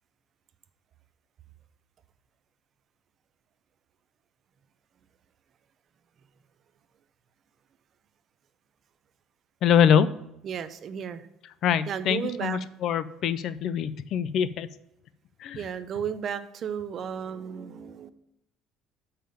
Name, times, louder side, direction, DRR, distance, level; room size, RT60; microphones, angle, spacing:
voice 1, 9.6-10.1 11.6-14.7 15.4-15.6, left 8 dB, 45° left, 15 dB, 0.4 m, -24 dB
voice 2, 10.4-11.3 11.9-12.6 15.5-18.1, right 8 dB, 35° right, 11 dB, 0.5 m, -33 dB
7.1 x 5.7 x 4.9 m, 0.80 s
cardioid pair, 170°, 0 cm